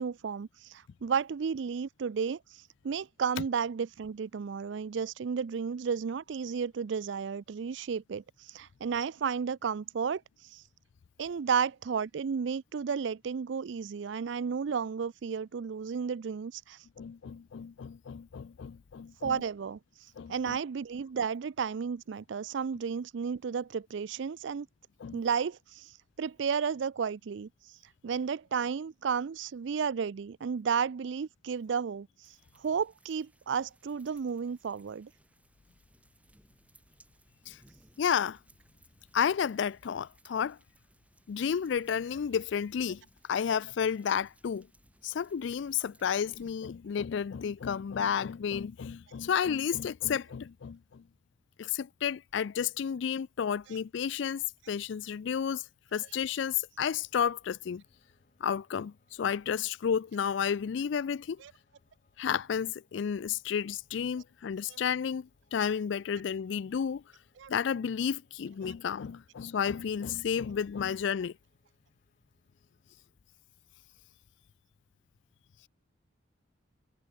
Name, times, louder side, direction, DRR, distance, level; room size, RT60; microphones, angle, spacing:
voice 1, 0.0-2.4 2.8-10.2 10.5-10.6 11.2-16.8 19.2-19.8 20.3-24.7 25.1-25.9 26.2-27.5 28.0-32.1 32.6-35.1 61.4-61.5 64.7-64.8 67.4-67.5 68.6-68.7, right 6 dB, 70° right, 0.4 m, -33 dB
voice 2, 17.0-19.4 20.2-20.6 25.0-25.2 37.5-37.6 38.0-38.4 39.1-40.6 41.3-43.0 43.3-44.7 45.0-51.0 51.6-55.6 55.9-57.8 58.4-61.4 62.2-67.0 67.5-71.3, left 7 dB, 70° left, 0.4 m, -32 dB
sound 1, 32.2-46.5, right 1 dB, 5° right, 3.1 m, -64 dB
Piano, 56.9-73.0, left 2 dB, 40° left, 6.9 m, -74 dB
head